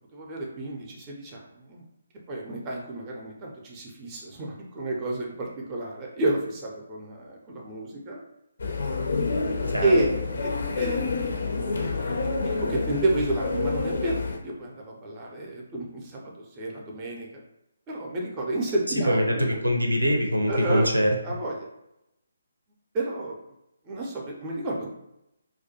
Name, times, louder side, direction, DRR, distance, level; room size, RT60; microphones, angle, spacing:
voice 1, 0.1-1.8 2.3-8.2 9.8-10.1 10.4-12.0 12.4-17.3 17.9-19.4 20.5-20.9 21.2-21.7 22.9-23.3 23.9-24.9, right 2 dB, 20° right, -1 dB, 0.4 m, -30 dB
sound 1, 8.6-14.4, left 4 dB, 55° left, 0.4 m, -28 dB
voice 2, 19.0-21.1, equal, 80° right, 2 dB, 0.5 m, -23 dB
2.3 x 2.1 x 2.7 m, 0.86 s
figure-of-eight pair, 140°, 0 cm